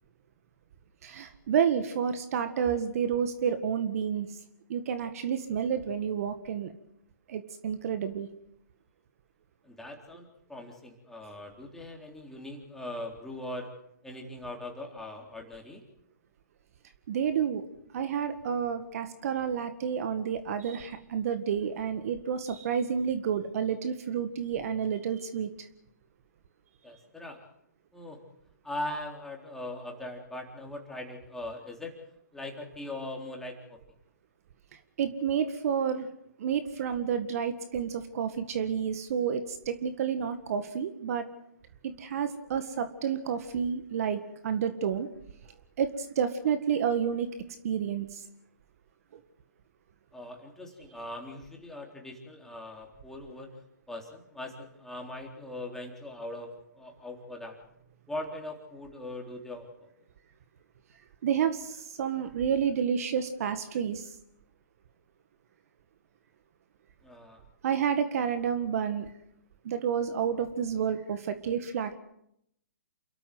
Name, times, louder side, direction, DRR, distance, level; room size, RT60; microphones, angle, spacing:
voice 1, 1.0-4.3 4.7-6.7 7.3-8.3 17.1-17.6 17.9-25.7 35.0-36.1 36.4-41.3 41.8-45.1 45.8-47.3 47.6-48.2 49.1-49.2 61.2-64.1 67.6-69.1 69.6-71.9, right 7 dB, 50° right, 10 dB, 1.8 m, -30 dB
voice 2, 9.6-13.7 14.0-15.8 26.8-27.4 27.9-28.2 28.6-31.9 32.3-33.8 50.1-53.6 53.9-57.6 58.1-59.9 67.0-67.4, left 1 dB, 5° left, 0 dB, 3.8 m, -40 dB
28.5 x 13.5 x 7.8 m, 0.76 s
hypercardioid pair, 135°, 10 cm